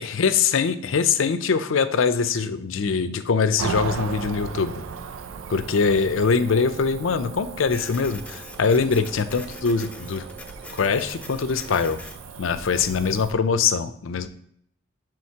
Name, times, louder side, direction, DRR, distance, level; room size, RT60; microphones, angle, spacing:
voice 1, 0.0-4.8 5.5-10.3 10.7-12.0 12.4-14.3, left 5 dB, 70° left, 11 dB, 0.5 m, -23 dB
Cricket / Motor vehicle (road), 3.6-13.3, right 5 dB, 85° right, 0.5 m, -37 dB
sound 1, 3.8-12.0, right 9 dB, 40° right, 0.8 m, -46 dB
Printer, 7.7-13.0, left 2 dB, 5° left, 0.5 m, -44 dB
11.0 x 3.9 x 2.8 m, 0.69 s
head